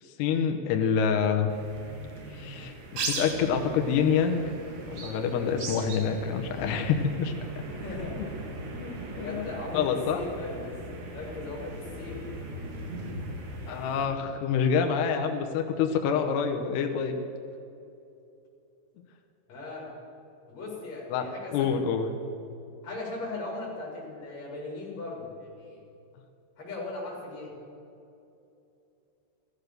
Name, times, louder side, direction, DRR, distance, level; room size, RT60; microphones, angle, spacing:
voice 1, 0.2-1.5 2.3-4.5 4.9-7.3 8.2-8.3 8.7-9.5 9.7-10.2 13.7-17.2 21.1-22.2, left 6 dB, 75° left, 4 dB, 2.7 m, -27 dB
sound 1, 1.5-14.1, right 2 dB, 65° right, 4.3 m, -39 dB
voice 2, 7.7-8.4 8.7-10.7 11.1-12.3 19.5-19.9 20.5-21.5 22.8-25.8 26.6-27.5, left 2 dB, 35° left, -5 dB, 5.7 m, -38 dB
15.0 x 14.0 x 6.6 m, 2.7 s
omnidirectional pair, 5.5 m